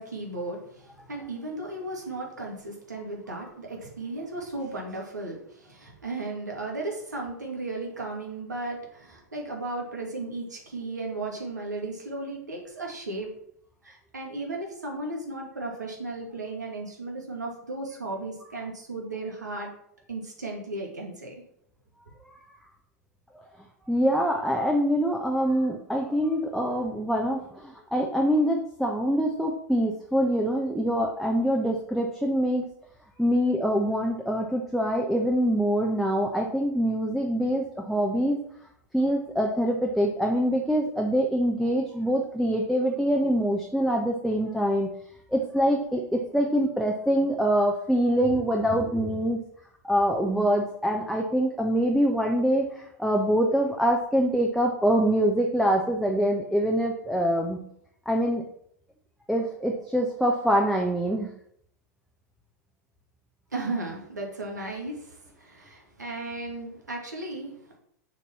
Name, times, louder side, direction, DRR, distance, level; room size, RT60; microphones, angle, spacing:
voice 1, 0.0-13.3 13.8-19.7 20.1-21.4 63.5-67.8, right 2 dB, 80° right, 0 dB, 2.3 m, -35 dB
voice 2, 23.9-32.7 33.2-38.4 38.9-44.9 45.3-49.4 49.8-57.6 58.1-58.4 59.3-61.3, equal, ahead, 0 dB, 0.9 m, -24 dB
6.9 x 4.6 x 5.7 m, 0.68 s
figure-of-eight pair, 95°, 9 cm